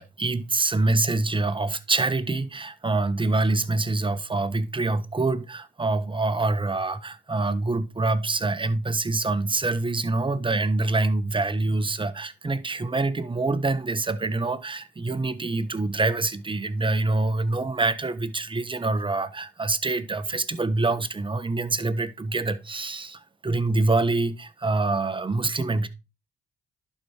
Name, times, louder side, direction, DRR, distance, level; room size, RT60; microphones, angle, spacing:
voice 1, 0.0-25.9, right 2 dB, 25° right, 1.2 m, -25 dB
11.0 x 4.8 x 4.4 m
supercardioid pair, 50°, 20 cm